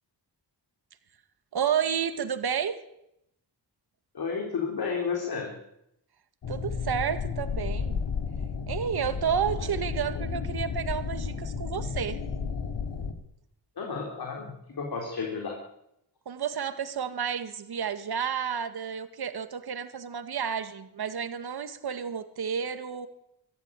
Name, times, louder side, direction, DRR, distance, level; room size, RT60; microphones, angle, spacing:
voice 1, 1.5-2.8 6.5-8.0 8.7-12.2 16.3-23.1, right 8 dB, 60° right, 10 dB, 2.0 m, -31 dB
voice 2, 4.1-5.5 9.6-9.7 10.1-10.2 13.8-15.6, left 5 dB, 60° left, 1 dB, 3.8 m, -32 dB
sound 1, 6.4-13.1, left 5 dB, 90° left, 2.5 m, -32 dB
24.0 x 15.0 x 9.9 m, 0.80 s
wide cardioid pair, 170°, 42 cm